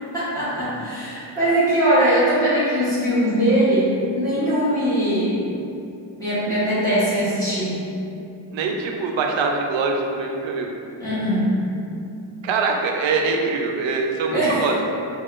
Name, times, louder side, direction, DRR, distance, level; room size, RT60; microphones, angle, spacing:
voice 1, 0.1-5.4 6.2-7.8 11.0-11.5 14.3-14.6, right 1 dB, 5° left, -15 dB, 1.1 m, -21 dB
voice 2, 8.5-10.7 12.4-14.8, right 4 dB, 65° right, 2 dB, 0.5 m, -23 dB
3.5 x 2.3 x 2.4 m, 2.6 s
cardioid pair, 110°, 49 cm